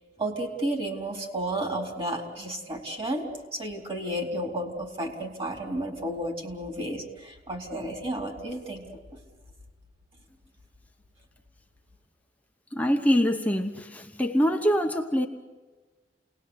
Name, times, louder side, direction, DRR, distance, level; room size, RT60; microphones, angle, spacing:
voice 1, 0.2-3.3 3.5-8.9 9.1-9.2, right 1 dB, 30° right, 2 dB, 4.1 m, -32 dB
voice 2, 12.7-15.3, equal, 10° left, 4 dB, 1.0 m, -24 dB
28.5 x 19.5 x 8.3 m, 1.3 s
head